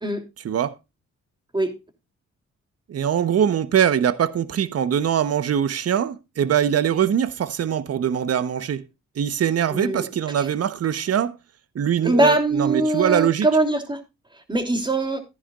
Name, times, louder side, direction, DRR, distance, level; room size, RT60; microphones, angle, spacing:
voice 1, 0.4-0.8 2.9-8.8 9.2-11.3 11.7-13.5, right 9 dB, 55° right, 1.0 m, -22 dB
voice 2, 9.7-10.0 12.0-14.0 14.5-15.2, right 2 dB, 15° right, 3.0 m, -21 dB
14.5 x 10.0 x 2.4 m
cardioid pair, 100°, 29 cm